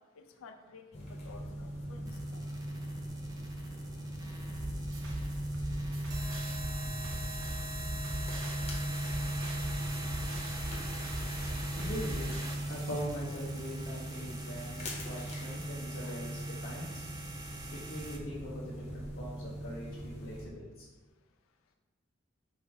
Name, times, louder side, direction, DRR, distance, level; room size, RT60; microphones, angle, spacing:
voice 1, 0.2-2.4, left 5 dB, 90° left, 6 dB, 0.4 m, -53 dB
sound 1, 0.9-20.4, right 1 dB, 35° left, 0.9 m, -39 dB
sound 2, 2.1-18.2, right 2 dB, 20° right, 0.5 m, -45 dB
sound 3, 4.5-12.5, right 1 dB, 85° right, 0.8 m, -41 dB
voice 2, 11.8-12.4 12.7-17.1 17.7-20.6, equal, 70° left, -9 dB, 1.0 m, -42 dB
5.3 x 2.1 x 4.7 m, 1.2 s
head